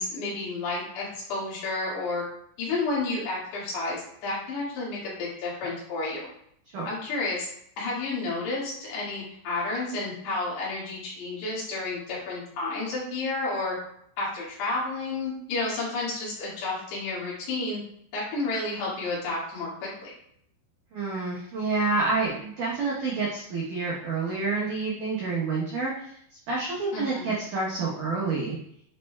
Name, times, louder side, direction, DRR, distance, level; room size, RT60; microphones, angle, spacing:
voice 1, 0.0-2.2 2.6-6.3 6.9-7.5 7.8-13.8 14.2-17.8 18.1-20.1 26.9-27.3, left 3 dB, 65° left, -6 dB, 4.2 m, -31 dB
voice 2, 20.9-25.9 26.5-28.6, right 3 dB, 75° right, -5 dB, 1.9 m, -28 dB
10.0 x 5.4 x 2.3 m, 0.69 s
omnidirectional pair, 5.4 m